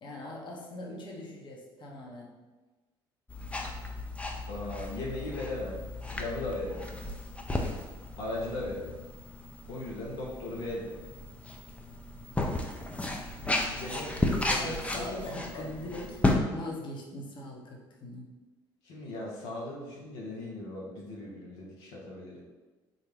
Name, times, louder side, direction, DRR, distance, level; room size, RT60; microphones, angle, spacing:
voice 1, 0.0-2.4 14.5-16.2 16.5-18.3, left 1 dB, 45° left, -1 dB, 0.8 m, -41 dB
sound 1, 3.3-16.4, left 2 dB, 10° left, 0.5 m, -34 dB
voice 2, 4.5-7.0 8.2-9.0 9.7-11.0 13.7-15.7 18.8-22.4, left 2 dB, 75° left, -3 dB, 0.7 m, -38 dB
3.8 x 2.1 x 3.4 m, 1.3 s
hypercardioid pair, 60°, 12 cm